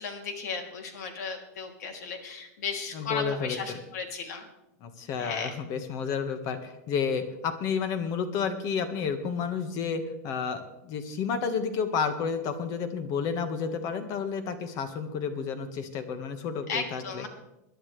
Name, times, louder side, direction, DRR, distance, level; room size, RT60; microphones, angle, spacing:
voice 1, 0.0-4.5 5.2-5.5 16.7-17.3, left 5 dB, 75° left, 3 dB, 3.1 m, -35 dB
voice 2, 2.9-3.8 4.8-17.2, left 6 dB, 40° left, 8 dB, 1.7 m, -31 dB
21.5 x 11.5 x 3.4 m, 0.90 s
supercardioid pair, 145°, 9 cm